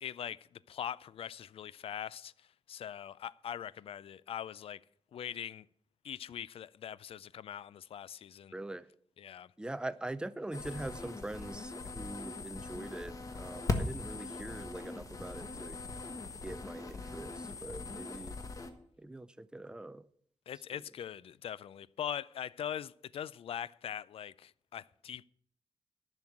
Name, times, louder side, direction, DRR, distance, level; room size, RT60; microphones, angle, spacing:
voice 1, 0.0-2.3 2.7-4.8 5.1-5.7 6.0-8.5 9.2-9.5 20.5-25.2, left 9 dB, 65° left, 0.4 m, -42 dB
voice 2, 8.5-8.9 9.6-15.8 16.4-18.4 19.0-20.1 20.7-20.8, right 1 dB, 10° right, 0.5 m, -43 dB
sound 1, 10.5-18.7, left 3 dB, 35° left, 1.4 m, -40 dB
10.5 x 6.3 x 8.6 m
cardioid pair, 105°, 10 cm